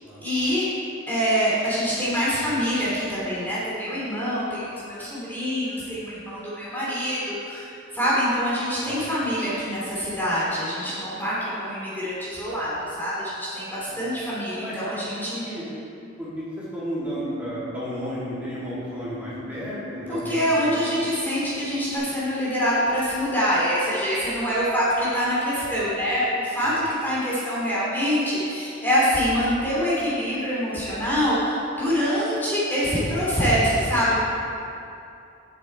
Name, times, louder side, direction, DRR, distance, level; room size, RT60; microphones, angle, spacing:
voice 1, 0.2-0.6 1.1-7.7 7.9-15.4 20.1-34.2, equal, 10° left, -9 dB, 2.6 m, -25 dB
voice 2, 14.6-15.7 16.2-20.7 26.6-26.8, equal, 5° right, -11 dB, 2.7 m, -33 dB
sound 1, 17.0-22.0, left 2 dB, 45° left, 2.6 m, -39 dB
11.0 x 7.8 x 4.4 m, 2.7 s
head